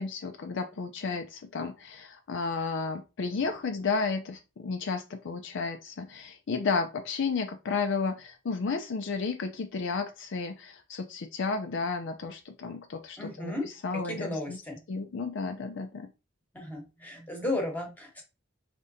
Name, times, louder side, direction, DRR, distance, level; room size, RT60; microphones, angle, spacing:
voice 1, 0.0-14.6 14.9-16.1, left 4 dB, 65° left, 5 dB, 0.5 m, -32 dB
voice 2, 13.2-13.7 13.9-14.8 16.5-18.2, left 1 dB, 10° left, 2 dB, 1.1 m, -34 dB
5.0 x 3.3 x 2.7 m, 0.28 s
head